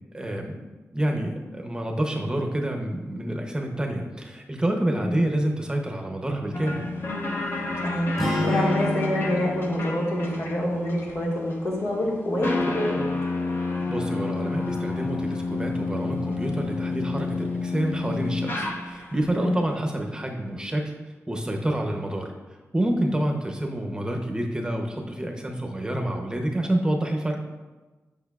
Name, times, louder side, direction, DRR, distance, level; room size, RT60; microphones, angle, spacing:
voice 1, 0.1-0.6 0.9-6.8 13.9-20.9 21.3-22.3 22.7-27.4, right 1 dB, 15° right, 2 dB, 0.7 m, -28 dB
sound 1, 6.5-19.3, left 3 dB, 45° left, 0.9 m, -30 dB
voice 2, 7.8-13.0 19.3-19.6, left 1 dB, 80° left, -4 dB, 1.6 m, -27 dB
sound 2, 8.2-12.3, equal, 10° left, 1.4 m, -30 dB
8.8 x 5.3 x 2.4 m, 1.2 s
wide cardioid pair, 105°, 5 cm